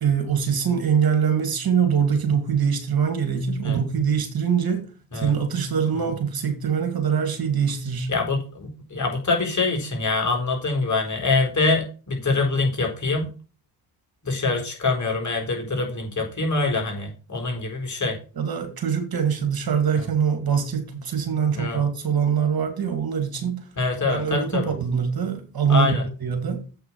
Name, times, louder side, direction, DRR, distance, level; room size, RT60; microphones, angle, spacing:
voice 1, 0.0-4.8 5.1-8.1 18.4-23.6 24.1-25.9 26.2-26.6, right 7 dB, 45° right, 2.5 m, -23 dB
voice 2, 8.1-13.3 14.2-18.2 21.5-21.8 23.8-24.7 25.7-26.0, left 3 dB, 35° left, 4.4 m, -24 dB
7.9 x 5.8 x 5.9 m
hypercardioid pair, 50°, 49 cm